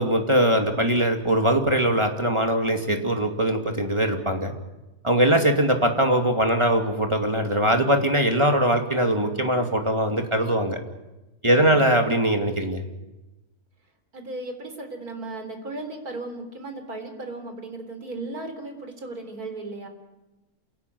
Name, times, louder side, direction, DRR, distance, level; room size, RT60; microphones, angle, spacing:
voice 1, 0.0-4.5 5.0-10.8 11.4-12.9, right 1 dB, 20° right, 3 dB, 2.5 m, -21 dB
voice 2, 5.2-5.5 11.4-11.9 14.1-19.9, right 2 dB, 90° right, 6 dB, 4.2 m, -36 dB
28.0 x 17.5 x 9.5 m, 1.0 s
omnidirectional pair, 1.5 m